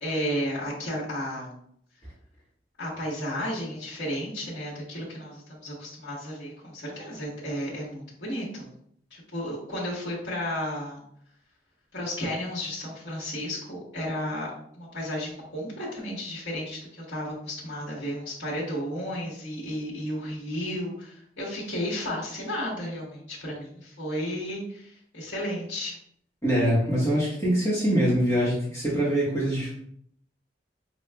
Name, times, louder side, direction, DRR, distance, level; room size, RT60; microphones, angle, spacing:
voice 1, 0.0-1.6 2.8-8.7 9.1-11.0 11.9-26.0, equal, 80° left, -7 dB, 1.3 m, -33 dB
voice 2, 26.4-29.7, equal, 15° left, -7 dB, 1.0 m, -24 dB
5.4 x 2.4 x 2.2 m, 0.66 s
head